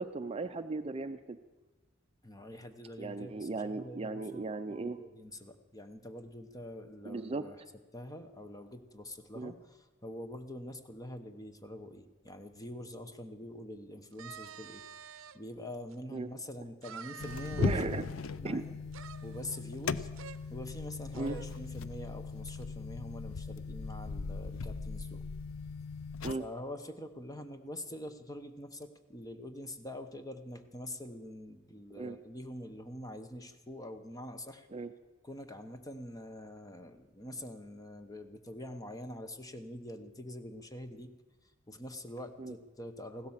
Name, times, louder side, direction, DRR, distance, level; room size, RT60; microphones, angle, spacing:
voice 1, 0.0-1.4 3.0-5.0 7.0-7.5 9.3-9.5 16.1-16.3 17.6-18.1 18.4-18.6 21.1-21.4 26.2-26.4 32.0-32.2 34.7-34.9 42.4-42.5, right 3 dB, 30° right, 9 dB, 0.5 m, -36 dB
voice 2, 2.2-7.6 7.9-17.8 18.3-18.8 19.2-20.1 20.5-25.2 26.4-34.7 35.2-41.1 41.7-43.3, left 1 dB, 15° left, 8 dB, 1.0 m, -45 dB
sound 1, 14.1-15.4 15.9-16.0 16.8-18.1 18.9-19.9 20.2-20.4 20.7-20.8 21.1-21.6, right 8 dB, 70° right, 0.6 m, -49 dB
sound 2, 17.2-26.3, left 4 dB, 75° left, 0.6 m, -38 dB
16.0 x 12.0 x 7.3 m, 1.2 s
head